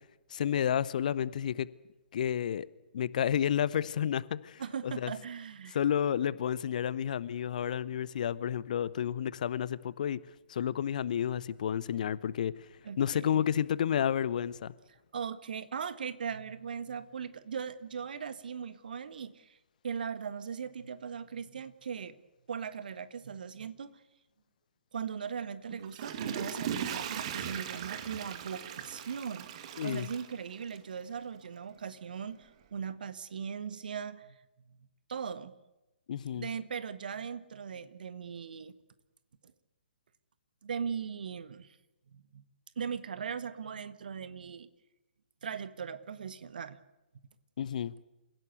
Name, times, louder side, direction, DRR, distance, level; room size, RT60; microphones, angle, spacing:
voice 1, 0.3-1.7 2.1-2.7 2.9-5.1 5.7-10.2 10.5-12.7 13.0-14.7 29.8-30.1 36.1-36.5 47.6-47.9, left 9 dB, 45° left, 0.9 m, -31 dB
voice 2, 4.6-5.8 12.8-13.3 14.9-19.6 19.8-22.2 22.5-24.0 24.9-29.5 29.8-34.4 34.7-35.5 36.3-38.7 40.6-41.7 42.1-42.4 42.7-44.7 45.4-46.8, right 7 dB, 55° right, 1.6 m, -39 dB
Water / Toilet flush, 25.7-31.0 31.4-31.5, right 9 dB, 35° right, 2.3 m, -39 dB
28.5 x 16.5 x 8.1 m
figure-of-eight pair, 130°, 6 cm